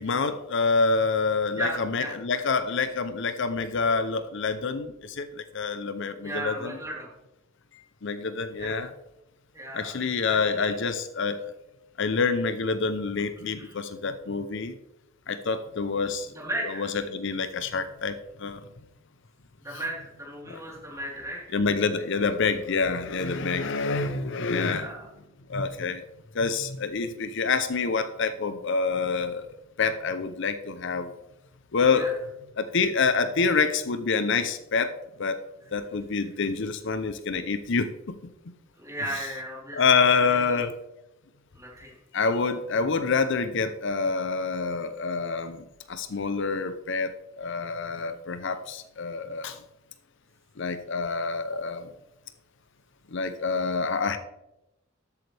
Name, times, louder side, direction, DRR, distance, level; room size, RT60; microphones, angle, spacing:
voice 1, 0.0-6.7 8.0-8.9 9.7-11.4 12.0-14.8 15.3-16.3 16.8-18.6 20.5-20.6 21.5-24.9 25.5-26.0 26.3-29.5 29.8-31.1 31.7-32.1 32.6-35.4 35.7-38.1 39.7-40.7 42.1-49.6 50.6-51.9 53.1-54.2, left 4 dB, 60° left, 11 dB, 0.7 m, -27 dB
voice 2, 1.5-2.1 6.2-7.1 8.5-8.8 9.5-9.9 10.3-10.7 13.6-13.7 15.8-16.0 16.3-16.9 19.6-21.6 24.7-25.1 31.9-32.1 38.8-40.6 41.5-41.9, right 1 dB, 15° right, -4 dB, 3.7 m, -36 dB
13.0 x 8.3 x 3.4 m, 0.89 s
head